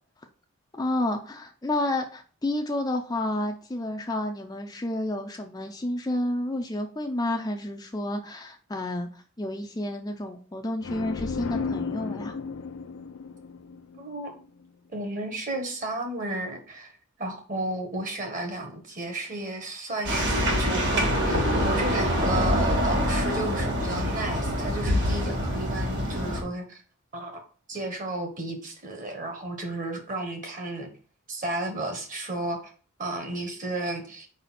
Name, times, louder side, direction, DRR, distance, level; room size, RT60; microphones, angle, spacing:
voice 1, 0.7-12.4, left 1 dB, 20° left, 3 dB, 0.5 m, -30 dB
sound 1, 10.8-14.5, left 5 dB, 75° left, 0.5 m, -34 dB
voice 2, 14.0-14.3 14.9-26.8 27.1-27.3 27.7-30.9 31.3-32.7 33.0-34.3, right 2 dB, 40° right, 4 dB, 1.5 m, -33 dB
sound 2, 20.0-26.4, equal, 55° right, 2.0 m, -25 dB
4.7 x 4.1 x 5.8 m, 0.42 s
head